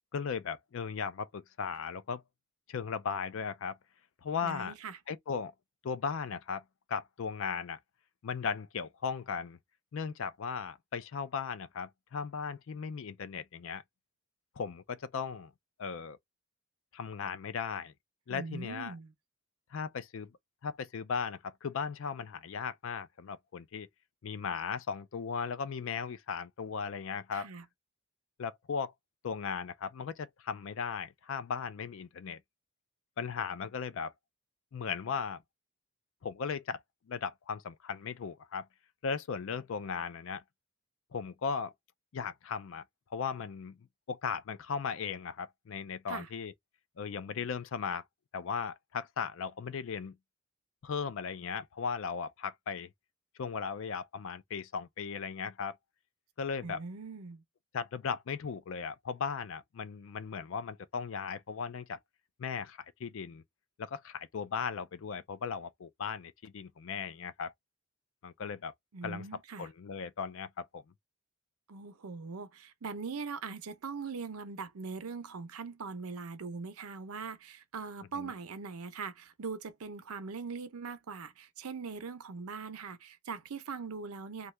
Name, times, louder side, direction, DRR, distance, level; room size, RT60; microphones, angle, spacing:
voice 1, 0.1-2.2 2.7-3.8 4.2-4.7 5.1-5.5 5.8-6.6 6.9-7.8 8.2-9.6 9.9-13.8 14.6-15.5 15.8-16.2 16.9-17.9 18.3-18.9 19.7-20.3 20.6-23.9 24.2-27.5 28.4-28.9 29.2-32.4 33.2-34.1 34.7-35.4 36.2-36.8 37.1-38.7 39.0-40.4 41.1-41.7 42.1-42.8 43.1-43.8 44.1-46.5 47.0-48.0 48.3-50.2 50.8-52.9 53.4-55.8 56.4-56.8 57.7-62.0 62.4-63.4 63.8-67.5 68.2-68.7 69.0-69.2 69.6-70.8 78.1-78.3, left 6 dB, 65° left, 0.4 m, -37 dB
voice 2, 4.4-5.0 18.3-19.1 27.3-27.6 46.1-46.3 56.6-57.4 68.9-69.7 71.7-84.5, right 5 dB, 85° right, 0.6 m, -41 dB
2.7 x 2.3 x 3.1 m
head